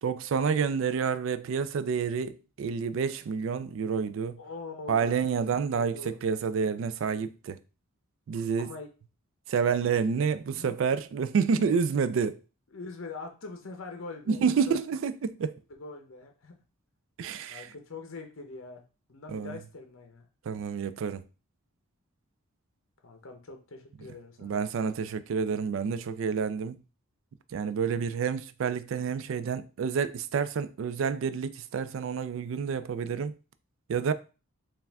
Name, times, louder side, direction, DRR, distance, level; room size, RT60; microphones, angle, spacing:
voice 1, 0.0-4.4 4.9-7.6 8.3-8.7 9.5-12.4 14.3-15.5 17.2-17.7 19.3-19.6 20.5-21.2 24.4-26.8 27.5-33.3 33.9-34.1, right 6 dB, 60° right, 0.3 m, -29 dB
voice 2, 4.4-5.4 5.8-6.2 8.6-8.9 10.6-10.8 12.7-14.8 15.8-16.6 17.5-18.8 19.1-20.3 23.0-24.6, left 3 dB, 65° left, 0.7 m, -43 dB
4.5 x 2.4 x 3.4 m
head